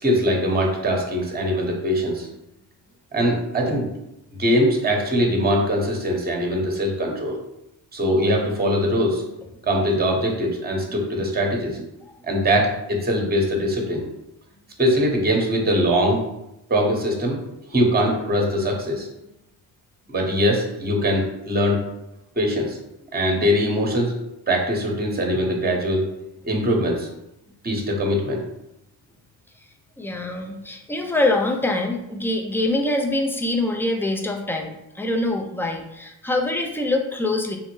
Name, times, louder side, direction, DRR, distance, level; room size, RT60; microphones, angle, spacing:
voice 1, 0.0-2.3 3.1-3.9 4.4-7.4 7.9-9.2 9.6-11.8 12.2-14.0 14.8-16.2 16.7-17.4 17.7-19.1 20.1-21.8 22.4-22.8 23.1-24.1 24.5-26.0 26.4-27.1 27.6-28.4, equal, 20° right, 0 dB, 0.9 m, -22 dB
voice 2, 30.0-37.6, left 2 dB, 5° left, 3 dB, 0.3 m, -24 dB
3.7 x 2.1 x 3.0 m, 0.88 s
cardioid pair, 70°, 46 cm